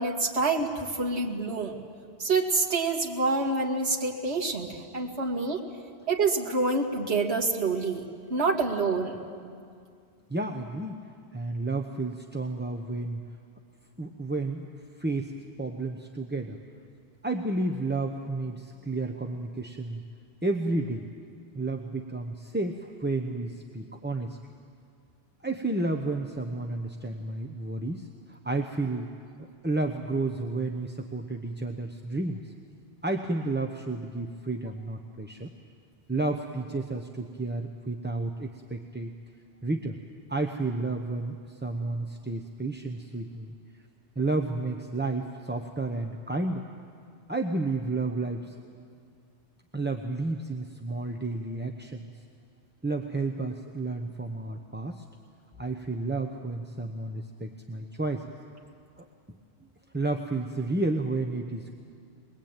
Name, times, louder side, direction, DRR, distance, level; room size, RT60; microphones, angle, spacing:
voice 1, 0.0-1.7 2.2-5.6 6.1-8.0 8.3-9.2, right 3 dB, 70° right, -3 dB, 2.5 m, -27 dB
voice 2, 10.3-11.0 11.3-13.2 14.0-14.7 15.0-15.3 15.6-16.6 17.2-20.0 20.4-21.0 21.5-24.4 25.4-29.1 29.6-32.4 33.0-35.5 36.1-39.1 39.6-40.0 40.3-43.5 44.2-46.7 47.3-48.5 49.7-52.1 52.8-55.0 55.6-58.2 59.0-59.1 59.9-61.7, right 2 dB, 10° right, 3 dB, 0.8 m, -31 dB
22.0 x 22.0 x 8.9 m, 2.2 s
omnidirectional pair, 1.1 m